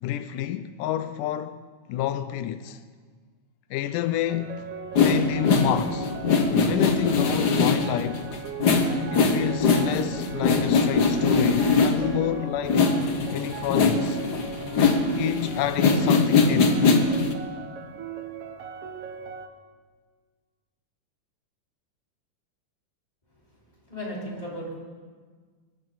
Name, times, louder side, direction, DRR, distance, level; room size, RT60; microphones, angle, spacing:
voice 1, 0.0-2.9 3.7-4.7 5.0-8.4 9.1-12.8 13.3-14.2 15.2-16.9, left 12 dB, 90° left, 2.2 m, -29 dB
sound 1, 4.3-19.5, right 7 dB, 60° right, 1.7 m, -39 dB
sound 2, 4.9-12.3 12.6-17.3, left 4 dB, 70° left, 0.9 m, -22 dB
voice 2, 23.5-24.7, equal, 10° left, 4.5 m, -36 dB
24.0 x 14.5 x 4.0 m
omnidirectional pair, 3.7 m